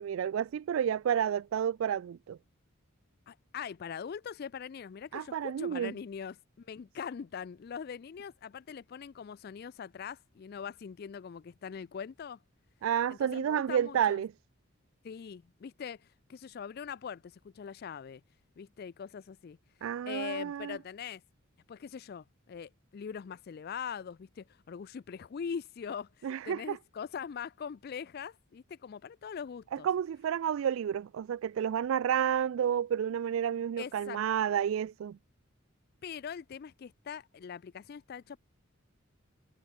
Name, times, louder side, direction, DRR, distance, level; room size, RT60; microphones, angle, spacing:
voice 1, 0.0-2.4 5.1-5.9 12.8-14.3 19.8-20.8 26.2-26.8 29.7-35.2, right 9 dB, 70° right, 0.3 m, -30 dB
voice 2, 3.3-12.4 13.1-14.2 15.0-18.2 18.6-19.6 20.1-21.2 21.7-29.9 33.8-34.2 36.0-38.4, left 7 dB, 45° left, 0.3 m, -42 dB
head